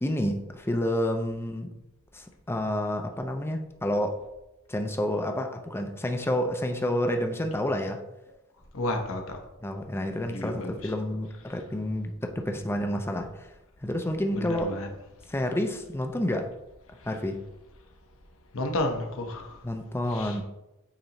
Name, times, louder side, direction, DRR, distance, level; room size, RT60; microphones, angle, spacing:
voice 1, 0.0-1.7 2.1-4.2 4.7-8.0 9.6-13.5 13.8-14.7 15.3-16.5 17.0-17.4 19.6-20.4, left 1 dB, 10° left, 0.5 m, -29 dB
voice 2, 8.7-9.4 10.3-10.9 14.3-14.9 18.5-19.6 20.1-20.4, left 1 dB, 65° left, 1.0 m, -31 dB
8.8 x 4.0 x 3.0 m
head